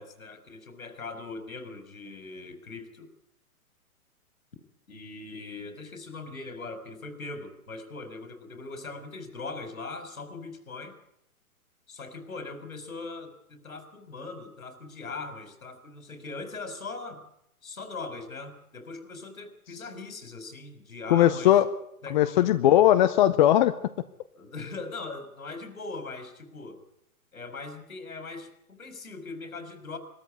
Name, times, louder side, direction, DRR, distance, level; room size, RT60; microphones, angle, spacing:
voice 1, 0.0-3.1 4.9-10.9 11.9-17.3 17.6-21.6 22.0-22.5 24.3-26.8 27.3-30.0, left 3 dB, 70° left, 8 dB, 4.7 m, -40 dB
voice 2, 21.1-21.7 22.1-23.7, left 12 dB, 35° left, 11 dB, 0.8 m, -19 dB
21.5 x 13.5 x 9.8 m, 0.75 s
figure-of-eight pair, 115°, 43 cm